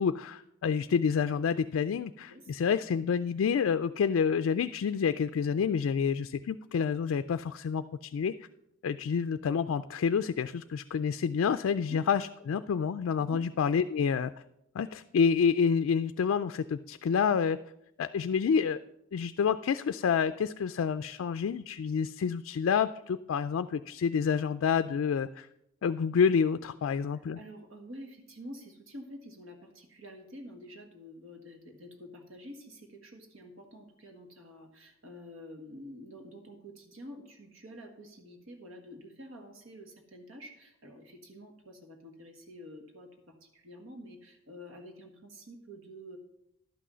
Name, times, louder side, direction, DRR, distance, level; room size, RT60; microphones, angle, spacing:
voice 1, 0.0-8.3 8.8-14.3 14.7-17.6 18.0-18.8 19.1-25.5 25.8-27.4, left 6 dB, 75° left, 10 dB, 0.3 m, -28 dB
voice 2, 2.3-2.8 11.8-12.0 27.1-46.2, equal, 75° right, 4 dB, 1.6 m, -48 dB
11.5 x 6.2 x 5.5 m, 0.82 s
head